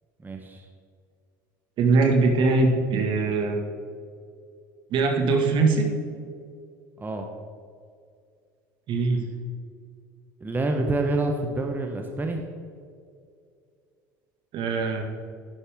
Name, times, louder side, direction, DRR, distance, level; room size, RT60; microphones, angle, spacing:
voice 1, 0.2-0.6 7.0-7.3 10.4-12.4, right 2 dB, 20° right, 4 dB, 1.1 m, -27 dB
voice 2, 1.8-3.6 4.9-5.9 8.9-9.2 14.5-15.0, right 3 dB, 55° right, 3 dB, 1.9 m, -21 dB
11.5 x 11.0 x 3.7 m, 2.3 s
hypercardioid pair, 70°, 10 cm